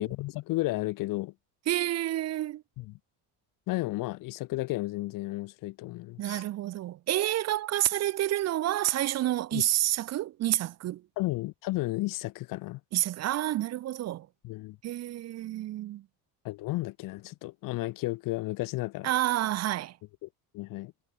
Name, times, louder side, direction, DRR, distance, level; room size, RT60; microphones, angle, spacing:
voice 1, 0.0-1.3 2.8-2.9 3.7-6.4 9.5-9.6 11.2-12.8 14.4-14.8 16.4-19.1 20.2-20.3 20.5-20.9, left 19 dB, 55° left, 0.5 m, -33 dB
voice 2, 1.7-2.6 6.2-11.0 12.9-14.3 14.8-16.1 19.0-20.0, right 14 dB, 40° right, 0.5 m, -29 dB
cardioid pair, 145°, 41 cm